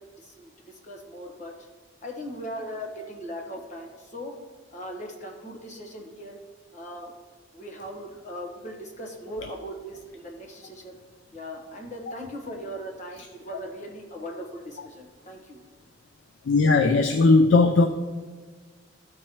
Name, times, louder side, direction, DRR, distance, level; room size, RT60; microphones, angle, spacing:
voice 1, 0.0-1.7 2.0-4.4 4.7-6.4 6.7-7.1 7.5-11.0 11.3-15.6, equal, 40° left, 1 dB, 1.2 m, -39 dB
voice 2, 16.4-17.9, left 3 dB, 75° left, 7 dB, 0.4 m, -18 dB
13.0 x 4.5 x 3.1 m, 1.5 s
head